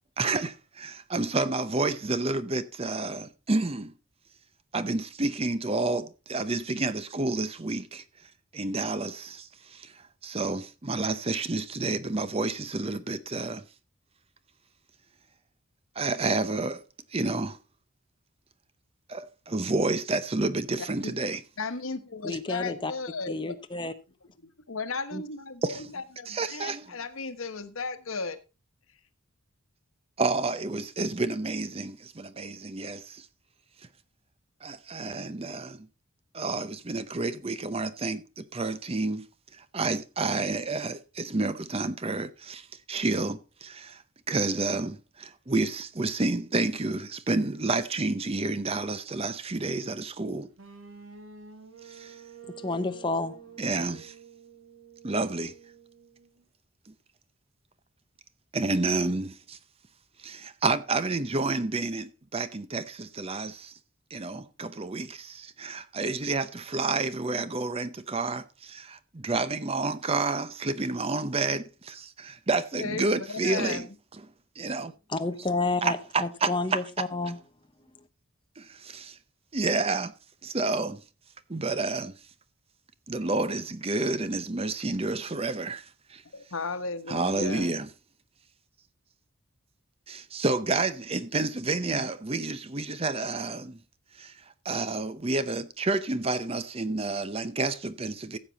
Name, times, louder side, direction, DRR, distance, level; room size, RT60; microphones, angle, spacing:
voice 1, 0.2-0.5 0.8-3.9 4.7-8.0 8.5-13.6 16.0-16.8 17.1-17.6 19.1-21.4 25.1-25.2 25.6-25.8 26.3-26.9 30.2-33.3 34.6-35.9 36.3-39.3 39.5-44.0 44.3-50.5 51.8-52.2 53.6-54.1 55.0-55.5 56.9-57.0 58.5-59.6 60.2-63.7 64.1-73.9 74.6-74.9 75.8-76.8 78.6-79.2 79.5-80.1 80.4-81.0 81.5-82.1 83.1-86.2 87.1-87.9 90.1-93.8 94.2-94.4 94.6-98.4, right 3 dB, 30° right, 0.7 m, -30 dB
voice 2, 21.6-23.6 24.7-28.4 72.7-73.9 86.3-87.7, left 4 dB, 85° left, 1.2 m, -35 dB
voice 3, 22.2-22.9 23.3-23.9 52.6-53.4 75.1-77.4, left 3 dB, 25° left, 0.9 m, -30 dB
sound 1, 50.6-56.4, right 6 dB, 70° right, 2.2 m, -49 dB
15.0 x 7.4 x 4.0 m
head